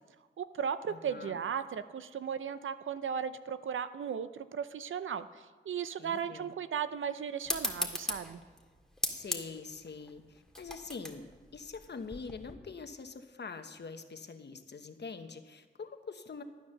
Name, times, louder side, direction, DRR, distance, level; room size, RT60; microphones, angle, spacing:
voice 1, 0.4-5.3 5.7-8.4, right 7 dB, 85° right, 13 dB, 0.6 m, -36 dB
voice 2, 0.9-1.4 6.0-6.5 9.1-16.4, left 4 dB, 60° left, 7 dB, 1.1 m, -44 dB
sound 1, 7.4-12.5, left 1 dB, 5° left, 1.8 m, -38 dB
13.0 x 9.3 x 6.6 m, 1.4 s
cardioid pair, 60°, 20 cm